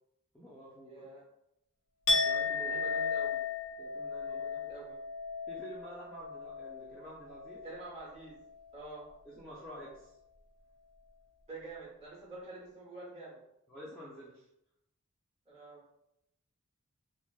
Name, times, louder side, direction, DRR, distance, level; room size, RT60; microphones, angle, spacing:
voice 1, 0.3-1.0 2.2-2.7 3.8-4.4 5.5-7.6 9.2-10.2 13.7-14.5, right 1 dB, 5° left, -8 dB, 0.4 m, -49 dB
voice 2, 0.8-1.2 2.6-3.4 4.2-4.9 7.6-8.4 8.7-9.1 11.5-13.4 15.5-15.8, right 3 dB, 30° right, -4 dB, 1.0 m, -47 dB
Chink clink, 2.1-8.0 8.3-8.7, left 4 dB, 65° left, 0.5 m, -35 dB
3.2 x 2.5 x 2.2 m, 0.82 s
head